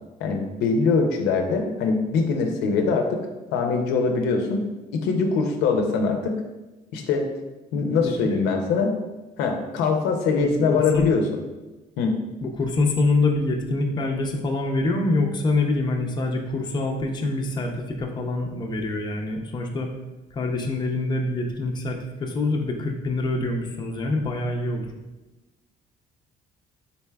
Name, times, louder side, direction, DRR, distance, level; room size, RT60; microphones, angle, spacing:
voice 1, 0.2-3.2 3.5-4.6 4.9-6.4 6.9-7.3 7.7-8.9 9.4-11.2 12.0-12.2, left 4 dB, 85° left, 4 dB, 0.5 m, -22 dB
voice 2, 10.4-11.1 12.4-19.9 20.3-24.9, left 2 dB, 25° left, 1 dB, 0.5 m, -25 dB
4.0 x 3.2 x 2.2 m, 1.1 s
cardioid pair, 110°, 17 cm